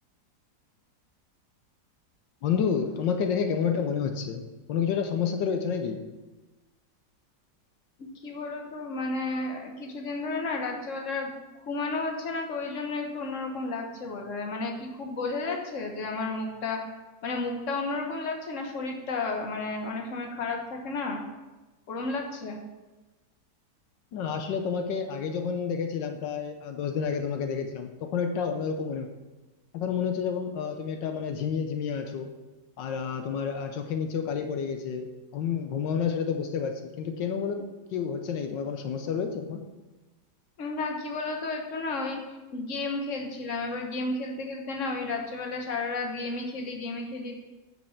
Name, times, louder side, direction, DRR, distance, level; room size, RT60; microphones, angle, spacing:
voice 1, 2.4-4.4 4.7-6.0 24.1-29.1 29.7-32.3 32.8-37.6 37.9-39.6, left 6 dB, 85° left, 6 dB, 1.5 m, -29 dB
voice 2, 8.0-11.3 11.7-16.8 17.2-21.2 21.9-22.6 40.6-42.2 42.5-47.4, left 3 dB, 45° left, 2 dB, 1.6 m, -32 dB
8.0 x 6.4 x 6.5 m, 1.2 s
omnidirectional pair, 1.9 m